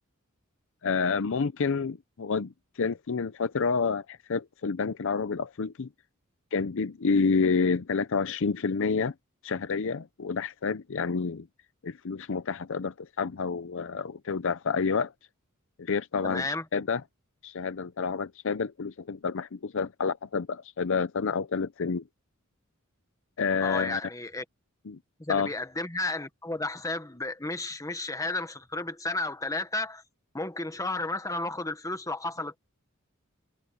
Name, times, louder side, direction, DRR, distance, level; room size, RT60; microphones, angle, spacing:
voice 1, 0.8-5.9 6.5-9.1 9.4-11.5 11.8-15.1 15.8-17.0 17.4-22.0 23.4-24.0 24.9-25.0 25.3-25.5, left 5 dB, 65° left, 0.6 m, -29 dB
voice 2, 16.2-16.6 23.6-24.4 25.2-30.0 30.3-32.6, left 2 dB, 15° left, 1.4 m, -33 dB
head